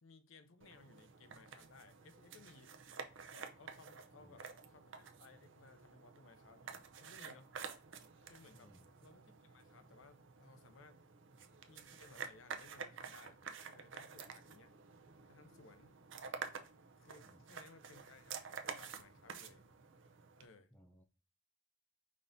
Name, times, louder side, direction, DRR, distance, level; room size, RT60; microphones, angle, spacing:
voice 1, 0.0-2.7 3.3-7.5 8.2-8.7 9.0-11.0 11.7-13.4 13.7-14.7 15.3-15.9 16.5-16.7 17.0-19.6 20.4-20.7, left 4 dB, 80° left, 0.7 m, -62 dB
sound 1, 0.6-20.5, right 6 dB, 65° right, 0.6 m, -50 dB
voice 2, 8.5-8.9 17.2-17.4 20.7-21.0, equal, 10° left, 0.6 m, -63 dB
5.1 x 3.8 x 2.7 m
head